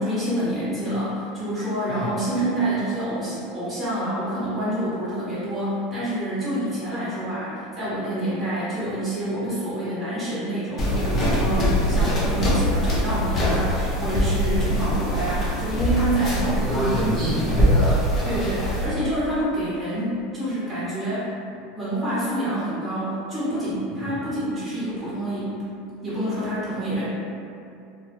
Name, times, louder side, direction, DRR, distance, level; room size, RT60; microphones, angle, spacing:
voice 1, 0.0-17.0 18.2-21.3 21.7-25.5 26.0-27.0, right 1 dB, 10° right, -12 dB, 1.0 m, -27 dB
sound 1, 10.8-18.9, equal, 35° left, 0.6 m, -23 dB
voice 2, 16.4-18.4 24.0-24.2, equal, 45° right, -9 dB, 1.1 m, -27 dB
2.2 x 2.1 x 3.0 m, 2.6 s
hypercardioid pair, 100°, 0 cm